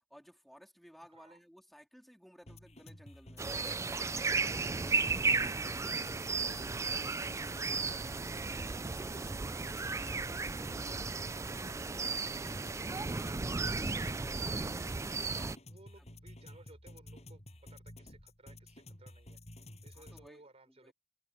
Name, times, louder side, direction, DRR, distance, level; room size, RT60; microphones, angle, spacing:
voice 1, 0.1-3.5 4.4-5.0 15.3-15.6 16.0-16.1 19.9-20.9, equal, ahead, 3.7 m, -57 dB
sound 1, 2.5-20.3, left 1 dB, 35° left, 7.0 m, -52 dB
sound 2, 3.4-15.6, right 4 dB, 15° right, 0.3 m, -35 dB
voice 2, 5.0-10.7 11.1-14.7 15.1-17.4 17.7-19.4 19.8-20.9, right 2 dB, 35° right, 3.9 m, -60 dB
head